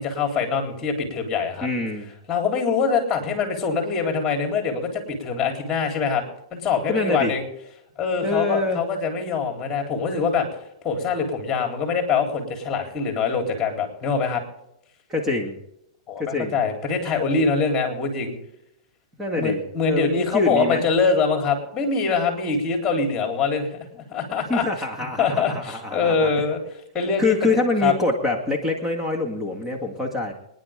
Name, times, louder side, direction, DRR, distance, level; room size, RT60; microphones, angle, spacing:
voice 1, 0.0-1.7 2.3-6.2 6.5-7.4 8.0-10.5 10.8-14.4 16.1-18.3 19.3-23.7 23.9-24.6 25.2-26.6 26.9-27.4 27.8-27.9, left 5 dB, 20° left, 4 dB, 3.8 m, -24 dB
voice 2, 1.6-2.1 6.9-7.3 8.2-8.8 15.1-15.6 16.2-16.6 19.2-19.6 19.8-20.8 24.5-26.3 27.2-30.3, left 2 dB, 10° right, 2 dB, 2.1 m, -25 dB
25.5 x 10.0 x 3.7 m, 0.82 s
hypercardioid pair, 130°, 3 cm